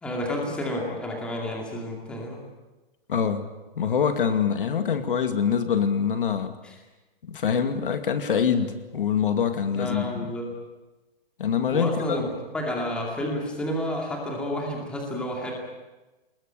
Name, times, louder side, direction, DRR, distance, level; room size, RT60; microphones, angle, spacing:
voice 1, 0.0-2.4 6.6-6.8 9.7-10.5 11.7-12.3 12.5-15.5, left 1 dB, 5° left, -1 dB, 2.4 m, -30 dB
voice 2, 3.1-3.5 3.8-6.6 7.3-10.3 11.4-12.2, left 7 dB, 65° left, 8 dB, 2.3 m, -24 dB
22.5 x 21.0 x 8.9 m, 1.1 s
hypercardioid pair, 180°, 29 cm